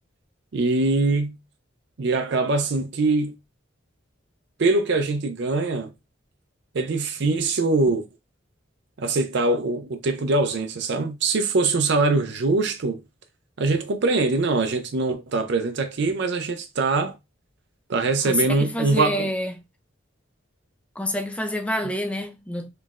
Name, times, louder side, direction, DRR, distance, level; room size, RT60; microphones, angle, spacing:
voice 1, 0.5-1.4 2.0-3.3 4.6-5.9 6.7-8.0 9.0-13.0 13.6-17.2 17.9-19.3, right 3 dB, 60° right, 0.5 m, -23 dB
voice 2, 18.3-19.6 21.0-22.7, left 1 dB, 5° left, 0.4 m, -27 dB
3.9 x 3.2 x 2.4 m
head